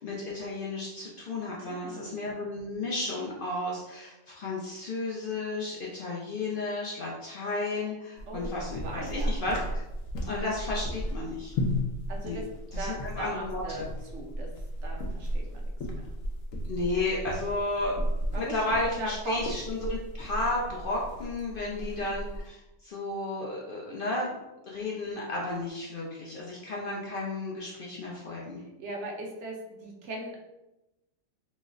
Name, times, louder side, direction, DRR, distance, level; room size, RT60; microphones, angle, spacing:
voice 1, 0.0-9.8 10.2-11.5 12.2-12.4 12.7-13.9 16.7-17.9 18.2-24.4 24.7-28.6, left 2 dB, 60° left, -3 dB, 0.6 m, -33 dB
voice 2, 1.6-2.1 8.3-9.4 12.1-12.4 12.8-13.9 14.1-14.5 14.8-16.1 18.3-19.6 21.6-22.0 28.6-30.4, right 1 dB, 65° right, 1 dB, 0.9 m, -39 dB
sound 1, 8.2-22.5, equal, 85° left, 1.0 m, -35 dB
3.0 x 2.0 x 3.6 m, 0.94 s
omnidirectional pair, 1.3 m